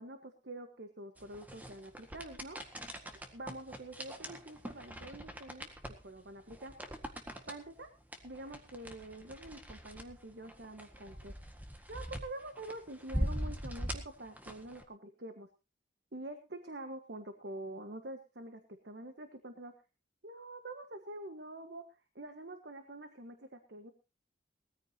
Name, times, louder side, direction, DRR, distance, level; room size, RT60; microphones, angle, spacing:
voice 1, 0.0-2.6 3.3-5.7 6.0-6.7 7.5-7.9 8.2-11.3 11.9-15.5 16.1-19.7 20.2-21.9 22.1-23.9, right 1 dB, 65° right, 7 dB, 1.5 m, -46 dB
sound 1, 1.2-14.8, equal, 10° right, 1.7 m, -42 dB
20.0 x 14.5 x 2.9 m, 0.29 s
head